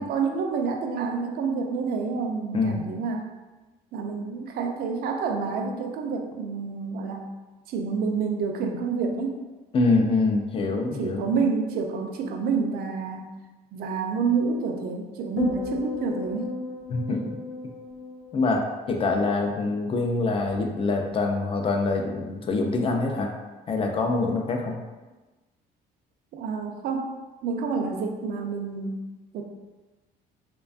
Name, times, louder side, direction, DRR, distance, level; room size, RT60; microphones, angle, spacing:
voice 1, 0.0-3.3 3.9-7.2 7.7-9.4 11.0-13.2 13.7-16.6 26.3-27.1 27.4-29.0 29.3-29.4, right 5 dB, 65° right, 3 dB, 0.4 m, -28 dB
voice 2, 2.5-2.8 9.7-11.3 16.9-17.2 18.3-23.3 23.7-24.8, left 3 dB, 35° left, 3 dB, 0.4 m, -25 dB
sound 1, 15.4-19.8 20.1-20.5, left 3 dB, 80° left, 0.5 m, -35 dB
2.5 x 2.2 x 2.4 m, 1.2 s
cardioid pair, 110°, 17 cm